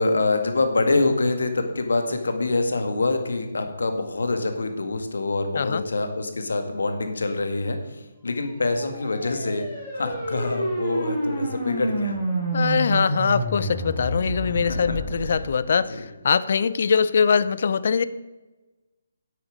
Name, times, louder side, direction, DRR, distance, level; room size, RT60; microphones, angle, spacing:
voice 1, 0.0-9.6 9.9-12.2 14.6-14.8 15.9-16.0, left 3 dB, 80° left, 6 dB, 1.8 m, -25 dB
sound 1, 8.5-15.5, right 1 dB, 5° left, 4.4 m, -29 dB
voice 2, 12.5-18.0, left 6 dB, 55° left, 16 dB, 0.5 m, -22 dB
10.0 x 8.4 x 5.1 m, 1.1 s
hypercardioid pair, 150°, 0 cm